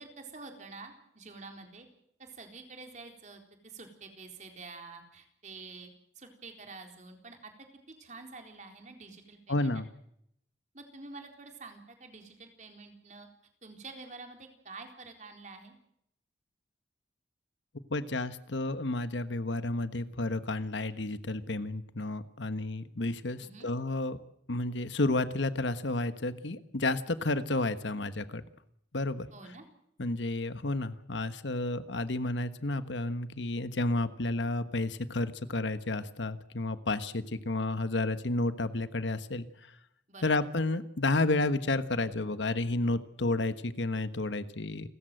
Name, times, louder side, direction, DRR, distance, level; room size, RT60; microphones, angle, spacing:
voice 1, 0.0-1.9 2.2-5.9 6.2-7.5 7.9-9.7 10.7-13.3 13.6-15.8 23.4-23.7 29.3-29.7 40.1-40.3, right 3 dB, 40° right, 4 dB, 4.0 m, -48 dB
voice 2, 9.5-9.9 17.9-24.2 24.5-28.4 28.9-29.3 30.0-39.5 40.2-44.9, left 2 dB, 80° left, 12 dB, 1.3 m, -31 dB
29.5 x 14.5 x 7.8 m, 0.76 s
head